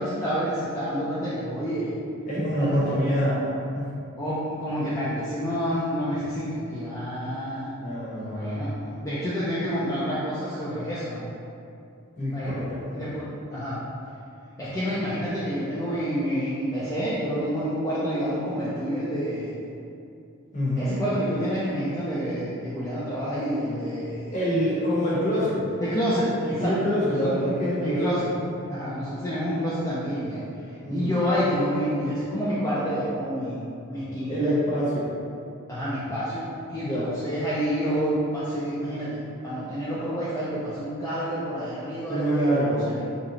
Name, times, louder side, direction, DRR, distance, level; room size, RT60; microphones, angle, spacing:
voice 1, 0.0-1.9 2.5-3.2 4.2-7.7 8.2-11.3 12.3-13.8 14.6-19.5 20.8-24.4 25.8-26.7 27.0-27.3 27.8-28.3 28.7-30.4 30.9-33.6 33.9-34.5 35.7-43.0, equal, 15° left, -10 dB, 0.3 m, -28 dB
voice 2, 2.3-3.5 3.7-3.9 7.8-8.7 12.2-12.8 20.5-20.9 24.3-25.6 26.4-28.0 30.8-31.1 34.3-35.1 36.8-37.1 42.0-43.0, equal, 35° left, -8 dB, 0.8 m, -25 dB
2.7 x 2.1 x 3.7 m, 2.6 s
head